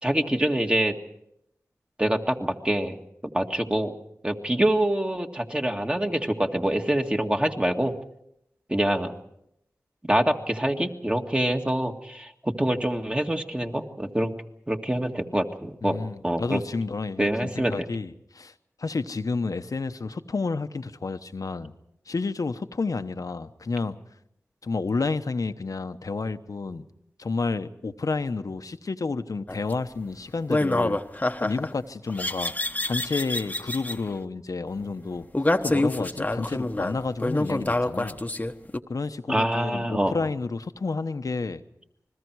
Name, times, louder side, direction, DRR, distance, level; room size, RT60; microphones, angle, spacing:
voice 1, 0.0-1.0 2.0-3.0 3.2-3.9 4.2-7.9 8.7-9.1 10.0-14.3 14.7-16.0 16.2-16.6 17.2-17.7 39.3-40.1, right 1 dB, 15° right, 2.0 m, -25 dB
voice 2, 15.8-18.5 18.8-21.7 22.1-24.0 24.6-26.8 27.2-31.0 31.4-32.5 32.8-35.3 35.6-38.2 38.9-41.6, left 3 dB, 70° left, 1.0 m, -30 dB
sound 1, 29.5-29.7 30.5-31.7 32.2-34.0 35.3-38.8, left 2 dB, 25° left, 1.1 m, -26 dB
29.0 x 21.5 x 4.7 m
wide cardioid pair, 50°, 6 cm